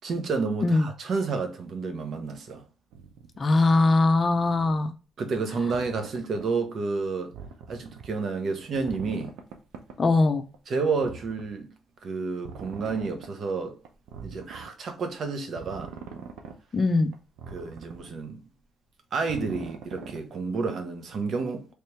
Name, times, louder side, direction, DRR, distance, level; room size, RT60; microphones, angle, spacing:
voice 1, 0.0-2.6 5.2-7.3 7.7-9.3 10.7-11.7 12.0-13.8 14.2-15.9 17.5-18.4 19.1-21.7, right 4 dB, 55° right, 0.9 m, -30 dB
sound 1, 2.9-3.4 4.1-4.8 5.6-6.5 7.3-8.1 8.5-10.0 10.5-10.6 11.0-11.6 12.4-13.3 13.8-14.7 15.5-16.6 17.1-18.2 19.3-20.2 21.1-21.2, right 6 dB, 90° right, 0.6 m, -42 dB
voice 2, 3.4-4.9 10.0-10.4 16.7-17.1, left 3 dB, 35° left, 0.5 m, -21 dB
3.3 x 2.9 x 3.2 m
cardioid pair, 90°, 0 cm